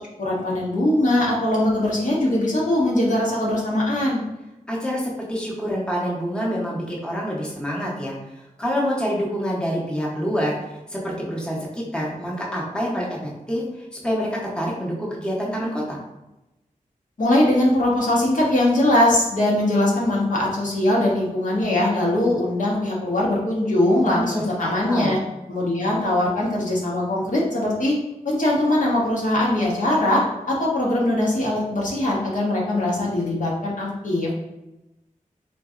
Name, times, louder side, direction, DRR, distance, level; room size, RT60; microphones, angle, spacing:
voice 1, 0.2-4.2 17.2-25.2 25.5-27.9 28.2-30.2 30.5-34.3, left 1 dB, 65° left, -4 dB, 0.9 m, -21 dB
voice 2, 4.7-10.6 10.9-16.0 24.0-25.2, equal, 5° left, -4 dB, 0.8 m, -27 dB
3.9 x 2.6 x 2.4 m, 0.97 s
wide cardioid pair, 90°, 14 cm